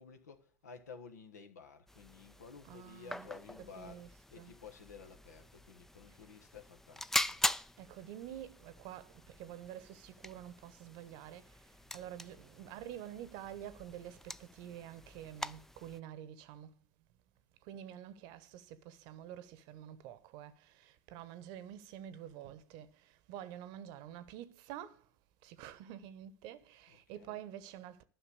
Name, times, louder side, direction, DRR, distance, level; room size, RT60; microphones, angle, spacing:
voice 1, 0.0-7.4 26.9-27.4, left 5 dB, 75° left, 1.3 m, -53 dB
sound 1, 1.9-16.0, left 1 dB, 5° left, 0.4 m, -42 dB
voice 2, 2.6-4.6 6.1-6.2 7.8-16.8 17.6-25.1 25.4-28.0, right 11 dB, 55° right, 0.9 m, -48 dB
11.5 x 5.8 x 8.1 m
figure-of-eight pair, 75°, 9 cm